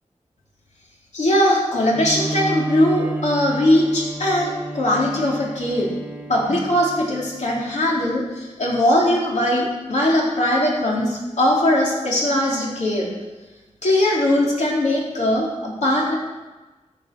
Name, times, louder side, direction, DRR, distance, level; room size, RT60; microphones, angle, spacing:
voice 1, 1.1-5.9 6.3-13.1 13.8-16.1, left 1 dB, 70° left, -3 dB, 3.5 m, -20 dB
Bowed string instrument, 1.9-7.6, right 1 dB, 10° right, 1.1 m, -31 dB
13.0 x 7.7 x 6.1 m, 1.2 s
wide cardioid pair, 80°, 13 cm